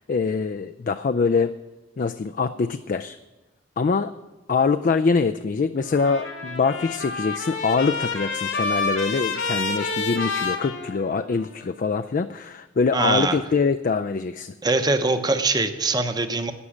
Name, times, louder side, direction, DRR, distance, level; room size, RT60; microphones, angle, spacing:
voice 1, 0.0-1.5 2.0-3.2 3.8-4.1 4.5-14.5, left 4 dB, 45° left, 9 dB, 0.3 m, -24 dB
Trumpet, 5.8-11.5, left 3 dB, 85° left, 2.3 m, -29 dB
voice 2, 12.9-13.4 14.6-16.5, right 3 dB, 20° right, 8 dB, 0.8 m, -22 dB
11.5 x 9.7 x 7.3 m, 1.1 s
head